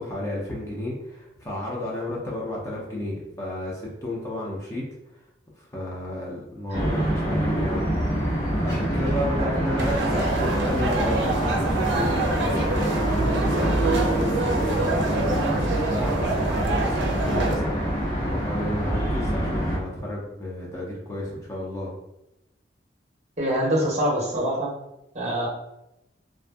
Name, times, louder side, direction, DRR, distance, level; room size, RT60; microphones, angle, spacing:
voice 1, 0.0-4.9 5.6-21.9, left 1 dB, 15° left, -4 dB, 0.4 m, -32 dB
sound 1, 6.7-19.8, right 1 dB, 55° left, 1.3 m, -25 dB
voice 2, 9.4-9.9 23.4-24.7 25.1-25.5, right 1 dB, 40° right, -3 dB, 0.7 m, -25 dB
sound 2, 9.8-17.6, right 2 dB, 80° right, 0.5 m, -27 dB
2.5 x 2.4 x 2.3 m, 0.88 s
head